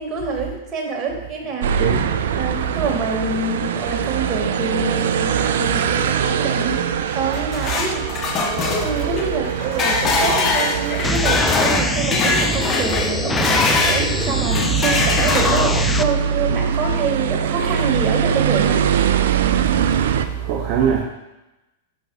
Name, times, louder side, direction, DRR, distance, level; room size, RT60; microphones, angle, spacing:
voice 1, 0.0-8.1 8.8-18.8, right 4 dB, 30° right, 0 dB, 1.8 m, -26 dB
sound 1, 1.6-20.3, right 8 dB, 65° right, 0.4 m, -23 dB
sound 2, 7.1-14.1 14.5-15.9, left 4 dB, 30° left, 0.9 m, -22 dB
sound 3, 11.0-16.0, left 3 dB, 10° left, 0.4 m, -24 dB
voice 2, 19.7-21.0, right 8 dB, 45° right, 1 dB, 0.8 m, -23 dB
10.0 x 6.1 x 2.4 m, 0.98 s
hypercardioid pair, 100°, 0 cm